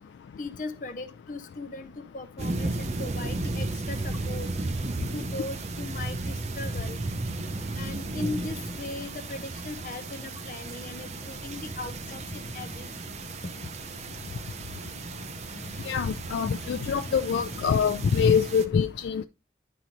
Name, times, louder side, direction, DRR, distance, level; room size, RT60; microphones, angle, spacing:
voice 1, 0.4-4.5 5.1-7.0 7.7-13.5, left 2 dB, 45° left, 0.6 m, -38 dB
sound 1, 2.4-18.7, right 2 dB, 40° right, 0.5 m, -34 dB
voice 2, 15.9-19.2, left 6 dB, 85° left, 0.3 m, -25 dB
10.5 x 3.9 x 3.0 m
head